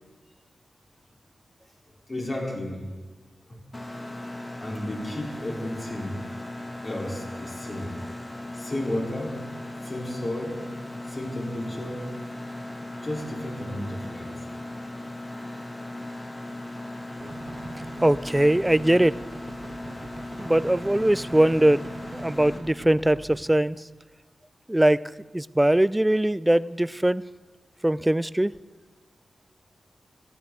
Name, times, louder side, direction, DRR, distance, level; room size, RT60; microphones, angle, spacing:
voice 1, 2.1-2.9 3.5-3.6 4.6-6.2 6.8-8.0 8.5-9.4 9.8-10.6 11.1-12.0 13.0-14.3, left 1 dB, 45° left, -3 dB, 4.0 m, -33 dB
Mechanisms, 3.7-22.6, left 1 dB, 25° left, 2.0 m, -38 dB
sound 1, 17.2-23.4, right 3 dB, 55° right, 1.0 m, -43 dB
voice 2, 18.0-19.1 20.4-21.8 22.1-23.8 24.7-25.0 25.3-27.2 27.8-28.5, right 1 dB, 15° right, 19 dB, 0.3 m, -21 dB
15.5 x 11.0 x 3.8 m, 1.3 s
cardioid pair, 45°, 0 cm